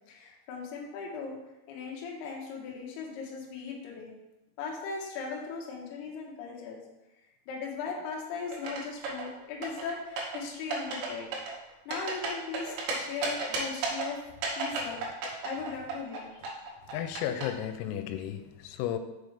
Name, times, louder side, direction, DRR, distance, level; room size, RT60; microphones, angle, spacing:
voice 1, 0.1-1.3 1.7-4.1 4.6-6.8 7.5-14.2 14.6-15.0 15.4-16.4, left 5 dB, 75° left, -2 dB, 2.5 m, -38 dB
sound 1, 8.5-9.3 9.6-10.4 10.7-11.1 11.3-12.9 13.2-14.1 14.4-16.2 16.4-17.4, right 4 dB, 75° right, 2.6 m, -32 dB
voice 2, 16.9-19.0, left 10 dB, 90° left, 9 dB, 3.3 m, -33 dB
6.7 x 5.0 x 3.2 m, 0.97 s
omnidirectional pair, 5.9 m